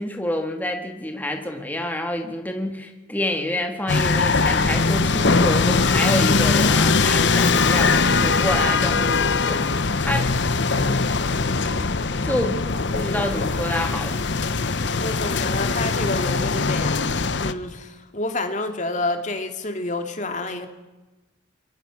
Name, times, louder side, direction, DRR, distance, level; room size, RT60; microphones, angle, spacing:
voice 1, 0.0-10.3 10.7-11.3 12.2-12.6 12.9-14.3, left 1 dB, 10° left, 3 dB, 1.8 m, -28 dB
sound 1, 3.9-17.5, left 4 dB, 65° left, 0.9 m, -21 dB
voice 2, 15.0-20.7, left 2 dB, 35° left, 6 dB, 2.2 m, -29 dB
27.0 x 23.0 x 6.0 m, 1.1 s
head